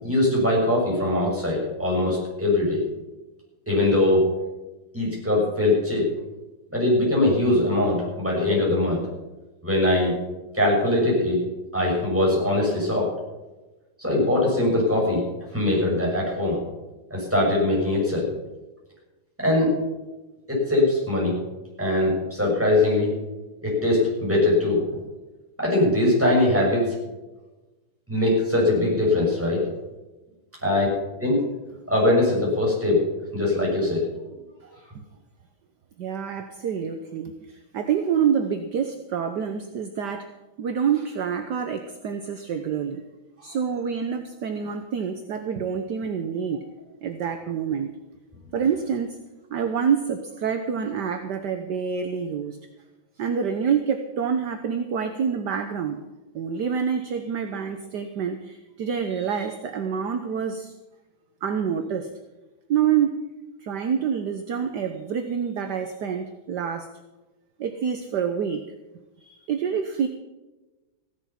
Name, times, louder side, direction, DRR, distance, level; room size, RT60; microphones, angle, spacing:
voice 1, 0.0-2.8 3.7-4.3 4.9-6.1 6.7-9.0 9.6-10.1 10.5-11.4 11.7-13.1 14.0-15.2 15.5-16.6 17.1-18.3 19.4-19.7 20.5-21.4 21.8-23.1 23.6-25.0 25.6-26.9 28.1-29.6 30.6-30.9 31.2-31.4 31.9-33.0 33.3-34.1, left 2 dB, 5° right, -4 dB, 6.5 m, -21 dB
voice 2, 36.0-40.3 40.6-43.0 43.4-46.6 47.0-47.9 48.5-49.2 49.5-52.6 53.2-56.0 56.3-60.7 61.4-62.1 62.7-63.2 63.6-66.9 67.6-68.6 69.2-70.1, right 7 dB, 60° right, 7 dB, 1.5 m, -27 dB
16.0 x 11.5 x 5.8 m, 1.1 s
omnidirectional pair, 2.2 m